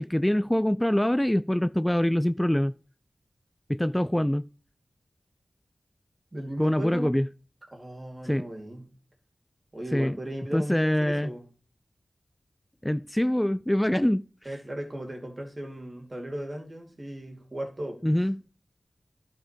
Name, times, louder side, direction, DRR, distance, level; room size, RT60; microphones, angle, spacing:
voice 1, 0.0-2.7 3.7-4.5 6.6-7.3 8.2-8.5 9.9-10.1 10.5-11.3 12.8-14.2 18.0-18.4, left 1 dB, 10° left, 0.3 m, -24 dB
voice 2, 6.3-7.2 7.7-8.9 9.7-11.5 14.4-18.2, right 1 dB, 40° right, 2.6 m, -37 dB
11.5 x 4.5 x 4.3 m
cardioid pair, 45°, 0 cm